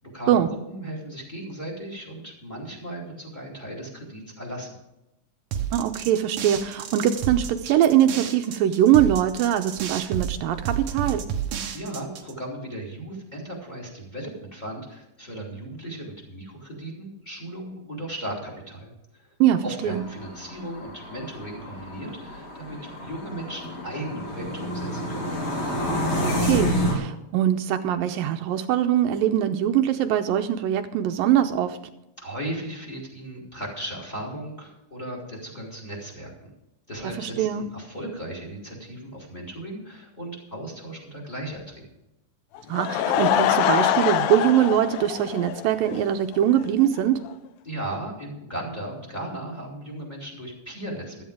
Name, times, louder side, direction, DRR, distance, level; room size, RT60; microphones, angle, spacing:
voice 1, 0.7-4.8 11.7-19.3 19.6-25.3 32.2-36.5 36.9-41.8 47.6-51.2, right 1 dB, 10° left, -1 dB, 3.7 m, -36 dB
sound 1, 5.5-12.3, right 8 dB, 65° right, 1.5 m, -31 dB
voice 2, 5.7-11.2 19.4-20.0 26.2-31.8 37.2-37.7 42.7-47.2, right 11 dB, 80° right, 7 dB, 2.3 m, -22 dB
sound 2, 19.8-27.0, equal, 45° left, 4.6 m, -29 dB
Laughter / Crowd, 42.5-46.0 46.3-46.4 47.0-47.1 47.2-47.3, left 10 dB, 85° left, 2.6 m, -24 dB
16.0 x 13.5 x 3.7 m, 0.90 s
omnidirectional pair, 4.2 m